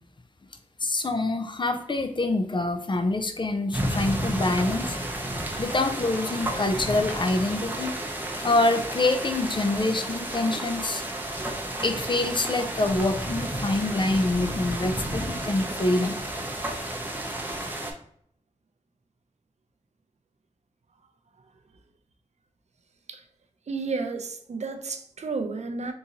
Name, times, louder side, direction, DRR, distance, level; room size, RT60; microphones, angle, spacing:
voice 1, 0.8-5.0 5.6-7.9 8.4-11.0 11.8-16.2, left 2 dB, 40° left, 0.4 m, -26 dB
sound 1, 3.7-17.9, right 1 dB, 15° right, 0.6 m, -32 dB
voice 2, 23.7-25.9, right 4 dB, 65° right, 0.4 m, -32 dB
3.7 x 2.7 x 2.8 m
wide cardioid pair, 85°, 12 cm